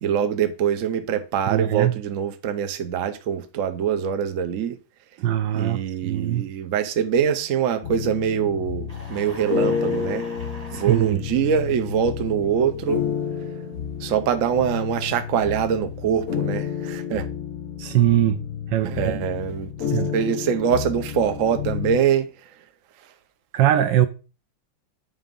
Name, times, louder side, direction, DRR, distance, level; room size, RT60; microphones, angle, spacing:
voice 1, 0.0-4.8 5.5-10.3 10.7-13.0 14.0-17.2 18.8-19.7 20.1-22.3, right 8 dB, 55° right, 0.9 m, -24 dB
voice 2, 1.5-2.0 5.2-6.5 10.7-11.2 17.8-18.4 18.7-19.2 19.9-20.1 23.5-24.1, right 12 dB, 70° right, 1.2 m, -21 dB
sound 1, 7.8-22.0, left 8 dB, 50° left, 1.4 m, -30 dB
sound 2, 8.9-11.1, right 1 dB, 20° right, 1.9 m, -42 dB
8.8 x 4.0 x 5.3 m
omnidirectional pair, 2.2 m